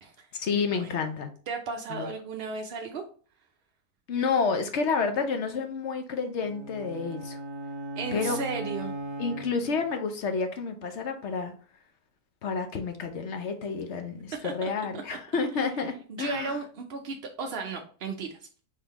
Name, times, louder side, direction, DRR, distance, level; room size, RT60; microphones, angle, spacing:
voice 1, 0.3-1.3 1.9-2.1 4.1-7.4 8.1-8.4 9.2-11.5 12.4-16.6, left 5 dB, 55° left, 6 dB, 0.8 m, -30 dB
voice 2, 1.5-3.0 8.0-8.9 14.4-14.5 16.1-18.4, right 4 dB, 70° right, 3 dB, 0.5 m, -34 dB
sound 1, 6.4-9.9, right 1 dB, 30° right, 1.4 m, -37 dB
4.7 x 3.7 x 3.0 m, 0.42 s
omnidirectional pair, 1.7 m